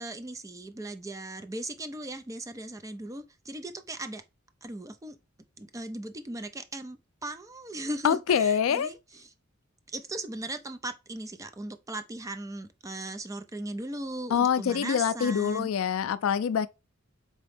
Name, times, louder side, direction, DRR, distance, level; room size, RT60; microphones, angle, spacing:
voice 1, 0.0-4.2 4.6-5.2 5.6-9.3 9.9-15.7, right 1 dB, 15° right, 0.4 m, -38 dB
voice 2, 8.0-8.9 14.3-16.7, left 7 dB, 85° left, 0.4 m, -25 dB
4.2 x 3.0 x 3.2 m
head